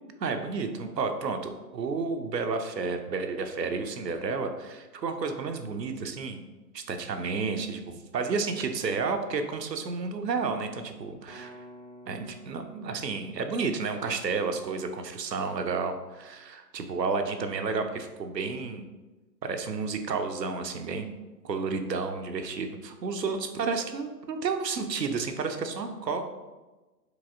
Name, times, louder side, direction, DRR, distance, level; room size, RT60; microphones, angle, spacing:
voice 1, 0.2-1.4 1.7-6.4 6.7-11.5 12.1-18.9 19.4-21.1 21.4-26.2, right 4 dB, 80° right, 6 dB, 0.6 m, -31 dB
sound 1, 11.3-15.1, right 1 dB, 25° left, 0.5 m, -51 dB
4.6 x 2.8 x 2.5 m, 1.2 s
figure-of-eight pair, 135°, 49 cm